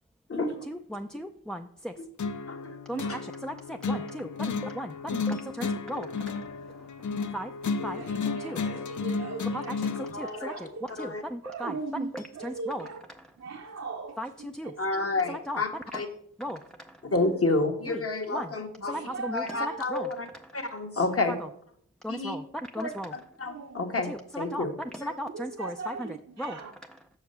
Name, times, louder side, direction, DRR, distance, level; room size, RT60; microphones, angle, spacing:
voice 1, 0.7-1.9 2.9-6.9 7.3-7.5 7.8-8.6 9.5-12.9 13.1-13.3 14.2-14.7 15.3-15.6 15.9-16.0 16.4-17.0 17.9-18.0 18.3-18.5 18.9-20.1 21.3-21.5 22.0-23.2 24.1-27.0, equal, ahead, 0.4 m, -37 dB
sound 1, 2.2-10.2, left 4 dB, 60° left, 0.6 m, -33 dB
voice 2, 7.8-9.7 10.2-10.8 11.4-13.0 13.4-14.2 14.6-14.7 15.2-15.3 18.8-19.8 23.5-23.9 25.3-26.7, right 4 dB, 50° right, 0.8 m, -39 dB
voice 3, 10.1-10.7 11.0-11.2 14.8-16.1 17.1-19.0 19.3-20.3 20.5-21.3 22.1-22.4 22.8-24.1 24.4-24.7 25.0-25.1, left 2 dB, 45° left, 1.3 m, -30 dB
6.4 x 4.8 x 6.7 m
cardioid pair, 55°, 33 cm